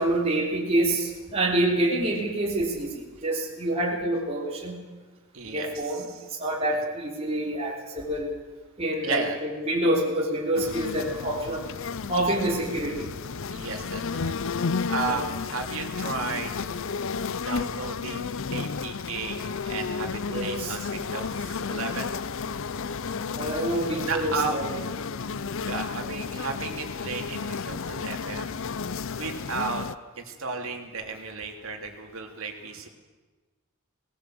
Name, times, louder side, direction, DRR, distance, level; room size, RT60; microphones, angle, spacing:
voice 1, 0.0-4.8 5.4-6.0 6.4-8.3 8.8-11.6 12.1-13.1 15.1-15.2 20.3-20.8 23.4-24.8, right 1 dB, 30° right, -3 dB, 3.2 m, -27 dB
voice 2, 5.3-6.2 6.7-6.8 9.0-9.4 13.5-16.6 17.4-22.2 24.0-24.6 25.6-28.6 29.1-29.9 30.2-32.9, right 4 dB, 65° right, 3 dB, 2.9 m, -34 dB
sound 1, 10.5-29.9, left 5 dB, 60° left, 0.6 m, -32 dB
19.0 x 18.5 x 7.7 m, 1.3 s
head